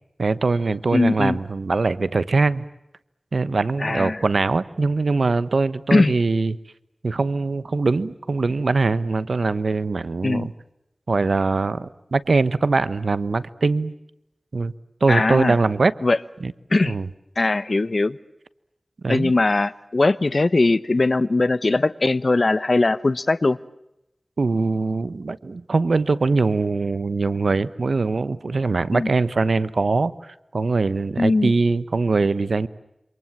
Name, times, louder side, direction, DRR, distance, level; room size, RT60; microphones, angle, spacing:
voice 1, 0.2-2.6 3.3-6.6 7.0-10.5 11.1-13.9 14.5-14.7 15.0-15.9 16.4-16.5 16.9-17.1 19.0-19.3 24.4-32.7, right 3 dB, 90° right, 16 dB, 1.0 m, -22 dB
voice 2, 0.9-1.4 3.8-4.2 5.9-6.1 10.2-10.5 15.1-15.6 16.0-16.2 16.7-17.0 17.4-18.2 19.1-23.6 28.9-29.1 31.2-31.5, left 2 dB, 60° left, 16 dB, 1.0 m, -20 dB
28.0 x 26.5 x 7.4 m, 0.87 s
wide cardioid pair, 55°, 0 cm